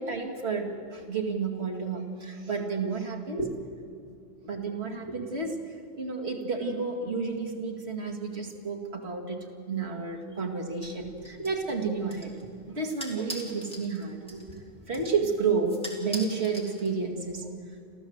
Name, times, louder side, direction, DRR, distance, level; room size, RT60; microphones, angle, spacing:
voice 1, 0.0-3.5 4.4-5.6 6.0-12.4 12.7-14.6 14.9-17.5, right 4 dB, 60° right, 1 dB, 2.5 m, -31 dB
sound 1, 10.8-17.3, right 1 dB, 5° left, 2.7 m, -44 dB
29.5 x 13.5 x 8.0 m, 2.4 s
omnidirectional pair, 1.2 m